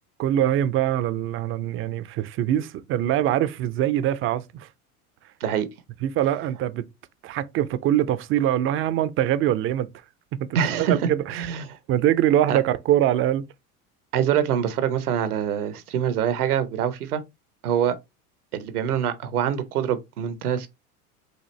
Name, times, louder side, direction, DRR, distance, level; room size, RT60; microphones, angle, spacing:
voice 1, 0.2-4.7 6.0-6.9 7.2-9.9 10.4-11.5 11.9-13.5, right 12 dB, 30° right, 0.4 m, -23 dB
voice 2, 10.5-11.8 12.5-12.6 14.1-17.2 17.6-18.0 18.5-20.7, right 9 dB, 80° right, 0.9 m, -25 dB
6.3 x 2.5 x 3.0 m
hypercardioid pair, 80°, 44 cm